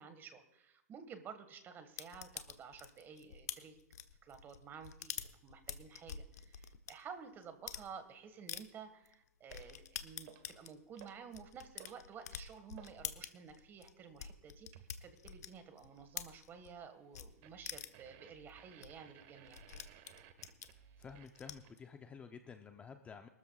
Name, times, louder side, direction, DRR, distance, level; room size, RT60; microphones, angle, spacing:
voice 1, 0.0-3.8 4.2-19.6, right 6 dB, 25° right, 9 dB, 1.6 m, -52 dB
sound 1, 2.0-6.9 7.4-7.8 8.5-8.6 9.0-9.1 9.5-16.8 17.1-17.3 17.6-18.1 18.5-18.6 18.8-18.9 19.1-21.8, left 9 dB, 75° left, 1.1 m, -47 dB
sound 2, 9.5-9.8 10.2-10.6 11.0-11.3 11.6-13.0 14.7-15.0 17.4-21.9, right 10 dB, 45° right, 1.4 m, -59 dB
voice 2, 21.0-23.3, left 6 dB, 15° left, 7 dB, 0.6 m, -51 dB
23.0 x 13.5 x 2.4 m, 0.93 s
hypercardioid pair, 130°, 9 cm